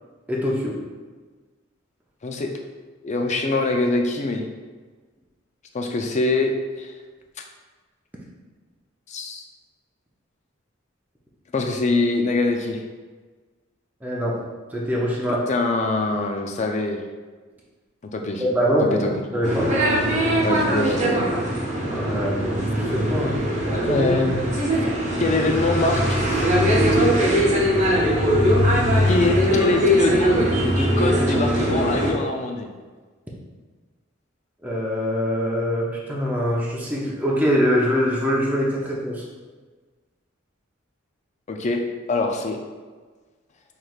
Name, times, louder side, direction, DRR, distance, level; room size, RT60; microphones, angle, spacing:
voice 1, 0.3-0.8 14.0-14.4 14.7-15.4 18.4-19.7 21.8-23.4 34.6-39.2, equal, 10° right, -5 dB, 0.6 m, -23 dB
voice 2, 3.0-4.4 5.7-6.9 9.1-9.4 11.5-12.8 15.5-17.0 18.1-18.4 18.8-19.1 20.4-21.5 23.9-24.4 25.2-26.2 26.5-27.6 29.1-30.4 30.7-32.7 41.5-41.8 42.1-42.6, left 2 dB, 35° left, 3 dB, 0.4 m, -24 dB
sound 1, 19.4-32.1, equal, 35° right, 0.9 m, -21 dB
5.8 x 3.2 x 2.4 m, 1.4 s
head